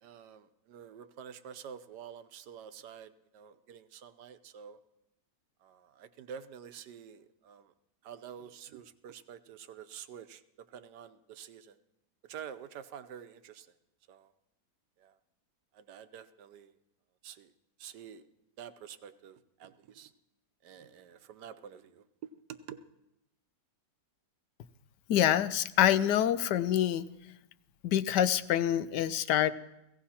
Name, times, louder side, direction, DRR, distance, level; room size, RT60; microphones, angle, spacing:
voice 1, 0.0-4.8 5.6-7.7 8.0-10.4 10.7-11.8 12.3-13.7 14.1-14.3 15.0-15.1 15.7-16.7 17.2-17.5 17.8-18.2 18.6-20.1 20.6-22.0 22.5-22.8, right 8 dB, 80° right, 12 dB, 1.4 m, -48 dB
voice 2, 25.1-27.1 27.8-29.5, left 11 dB, 80° left, 14 dB, 1.3 m, -26 dB
17.0 x 16.5 x 4.3 m, 0.89 s
omnidirectional pair, 1.8 m